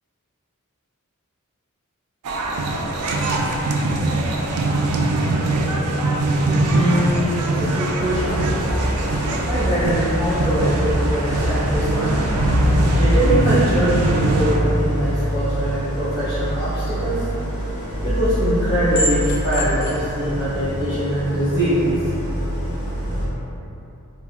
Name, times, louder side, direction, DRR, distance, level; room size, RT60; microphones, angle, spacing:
sound 1, 2.2-14.6, right 2 dB, 75° right, 0.3 m, -22 dB
voice 1, 6.7-8.4 9.4-12.2 12.9-17.2 18.0-22.0, equal, 10° right, -19 dB, 1.1 m, -22 dB
Idling, 8.0-23.3, equal, 75° left, 1.1 m, -24 dB
sound 2, 17.7-21.9, equal, 45° left, 0.4 m, -32 dB
3.4 x 2.2 x 2.3 m, 2.8 s
head